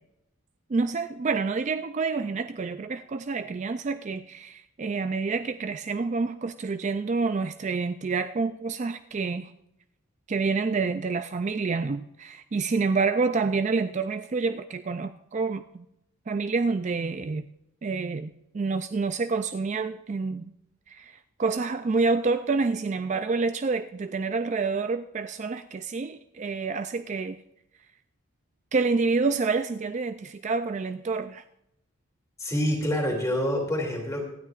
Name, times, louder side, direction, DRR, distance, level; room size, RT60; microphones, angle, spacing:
voice 1, 0.7-9.5 10.3-15.9 16.3-17.5 17.8-20.5 20.9-27.4 28.7-31.4, right 4 dB, 35° right, 9 dB, 0.3 m, -28 dB
voice 2, 32.4-34.3, left 1 dB, 15° left, 1 dB, 2.7 m, -27 dB
25.5 x 9.3 x 2.5 m, 0.81 s
head